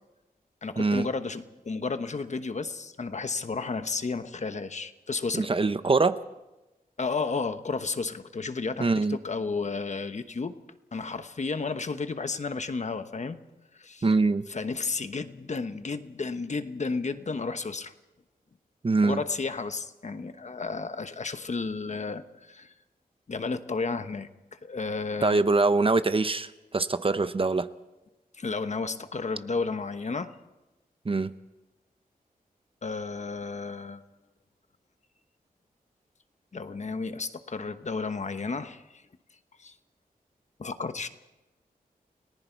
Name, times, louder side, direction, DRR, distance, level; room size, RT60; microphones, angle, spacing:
voice 1, 0.6-5.5 7.0-10.6 10.9-13.4 13.7-14.1 14.5-17.9 19.0-22.7 23.3-25.4 28.3-30.3 32.8-34.0 36.5-39.0 39.6-39.7 40.6-41.1, left 4 dB, 50° left, 10 dB, 1.1 m, -32 dB
voice 2, 5.3-6.2 8.8-9.2 14.0-14.4 18.8-19.2 25.2-27.7 31.0-31.3, right 3 dB, 35° right, 12 dB, 0.7 m, -24 dB
30.0 x 19.0 x 4.6 m, 1.0 s
wide cardioid pair, 110°, 16 cm